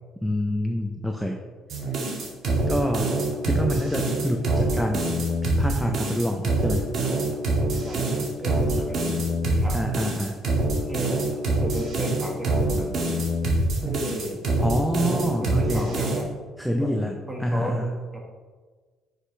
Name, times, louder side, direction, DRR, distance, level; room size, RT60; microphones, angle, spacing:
voice 1, 0.2-1.4 2.7-3.1 3.5-5.1 5.4-6.9 9.7-10.3 14.6-16.0 16.6-18.0, equal, ahead, 2 dB, 0.9 m, -27 dB
sound 1, 1.7-16.2, right 2 dB, 65° right, 2.2 m, -25 dB
voice 2, 7.8-9.2 9.5-9.8 10.7-11.1 11.6-13.0 13.8-14.4 15.4-16.3 16.7-16.9 17.3-17.8 18.1-18.2, equal, 15° right, 0 dB, 2.3 m, -34 dB
9.8 x 6.6 x 3.4 m, 1.4 s
cardioid pair, 80°, 0 cm